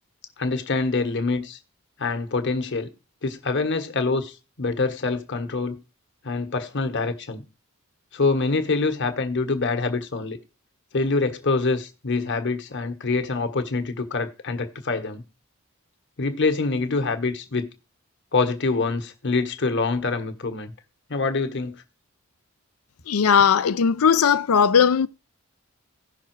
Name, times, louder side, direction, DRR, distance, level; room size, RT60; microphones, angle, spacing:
voice 1, 0.4-1.6 2.0-2.9 3.2-5.8 6.2-7.4 8.1-10.4 10.9-15.2 16.2-17.7 18.3-20.7 21.1-21.8, left 3 dB, 55° left, 1.3 m, -25 dB
voice 2, 23.1-25.1, left 7 dB, 90° left, 0.5 m, -18 dB
15.5 x 5.7 x 4.6 m
head